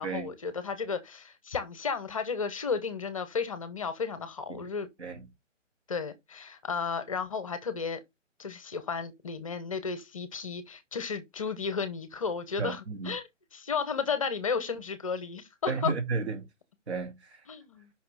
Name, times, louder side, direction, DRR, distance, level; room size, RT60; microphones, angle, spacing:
voice 1, 0.0-4.9 5.9-8.0 8.4-12.8 13.1-13.2 13.5-15.9 17.5-17.9, left 5 dB, 25° left, 0.7 m, -33 dB
voice 2, 12.6-13.1 15.7-16.5 16.9-17.5, right 4 dB, 60° right, 2.4 m, -33 dB
5.8 x 5.5 x 3.3 m
figure-of-eight pair, 155°, 38 cm